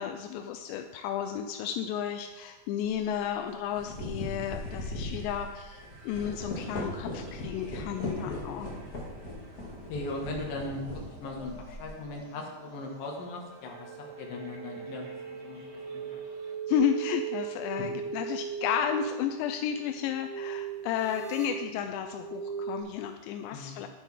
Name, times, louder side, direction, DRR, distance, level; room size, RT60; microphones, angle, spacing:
voice 1, 0.0-8.7 16.7-23.9, left 9 dB, 85° left, 6 dB, 2.8 m, -32 dB
sound 1, 2.8-3.0 3.6-12.0, left 1 dB, 35° left, 1.6 m, -39 dB
sound 2, 4.6-16.6, right 1 dB, 70° right, 4.3 m, -54 dB
voice 2, 8.2-8.6 9.9-15.6 15.9-16.2 17.8-17.9 23.5-23.8, left 2 dB, 60° left, 0 dB, 3.1 m, -39 dB
sound 3, 13.6-22.8, right 7 dB, 30° right, 2.3 m, -38 dB
11.0 x 10.0 x 3.6 m, 1.2 s
omnidirectional pair, 5.1 m